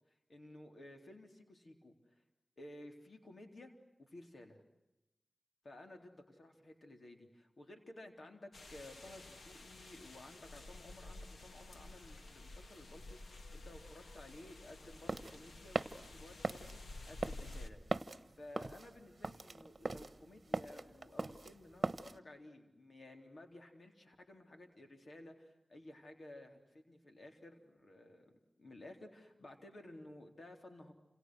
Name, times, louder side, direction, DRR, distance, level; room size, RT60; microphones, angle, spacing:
voice 1, 0.1-1.9 2.6-3.7 4.0-4.6 5.6-17.8 18.4-30.9, left 1 dB, 70° left, 4 dB, 3.9 m, -55 dB
sound 1, 8.5-17.7, left 2 dB, 90° left, 2.0 m, -52 dB
sound 2, 14.8-22.2, right 3 dB, 50° right, 1.3 m, -40 dB
29.5 x 28.0 x 6.5 m, 0.97 s
wide cardioid pair, 60°, 0 cm